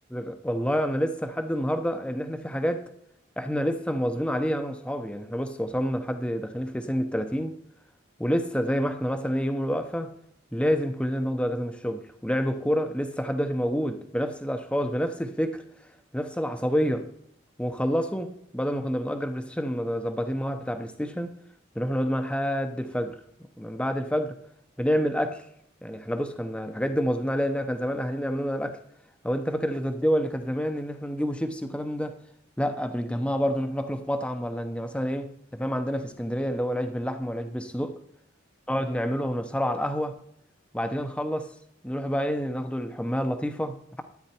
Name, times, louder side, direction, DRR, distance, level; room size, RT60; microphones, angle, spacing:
voice 1, 0.1-2.9 3.4-7.6 8.2-10.1 10.5-15.6 16.1-17.1 17.6-21.3 21.7-23.2 23.6-24.4 24.8-25.5 25.8-28.8 29.2-32.1 32.6-37.9 38.7-40.1 40.7-41.5 41.8-44.0, equal, 5° left, 0.9 m, -28 dB
13.0 x 9.6 x 4.5 m
head